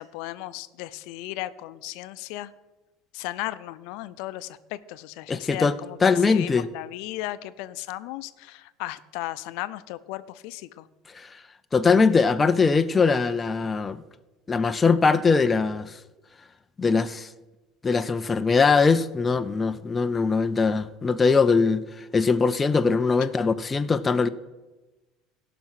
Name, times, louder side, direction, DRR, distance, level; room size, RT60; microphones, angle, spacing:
voice 1, 0.0-2.5 3.1-10.9, left 16 dB, 70° left, 0.5 m, -35 dB
voice 2, 5.3-5.7 6.0-6.7 11.1-11.3 11.7-14.0 14.5-15.9 16.8-17.3 17.8-21.8 22.1-24.3, left 4 dB, 15° left, 0.4 m, -21 dB
16.5 x 5.9 x 5.7 m
cardioid pair, 140°, 0 cm